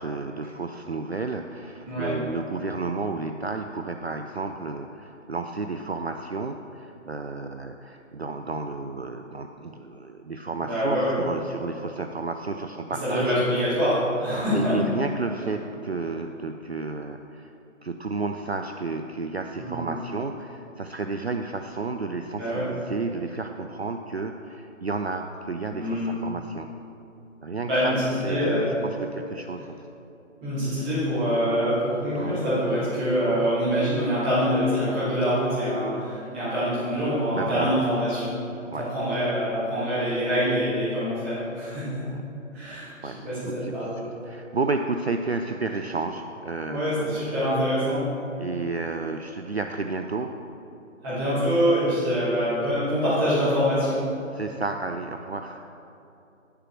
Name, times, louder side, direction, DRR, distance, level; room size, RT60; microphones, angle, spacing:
voice 1, 0.0-13.3 14.5-17.5 17.8-26.7 27.4-27.9 28.2-29.8 32.2-32.5 33.3-33.5 37.3-37.8 38.7-38.9 42.0-42.2 43.0-47.3 48.4-50.4 54.3-55.6, right 3 dB, 55° right, 5 dB, 0.5 m, -32 dB
voice 2, 10.6-11.1 13.0-14.8 19.6-19.9 22.4-22.7 25.7-26.1 27.6-28.8 30.4-38.3 38.8-42.0 42.5-42.9 43.2-43.9 46.7-48.1 51.0-54.1, equal, 5° right, -13 dB, 1.6 m, -25 dB
10.5 x 7.3 x 4.4 m, 2.8 s
figure-of-eight pair, 155°, 39 cm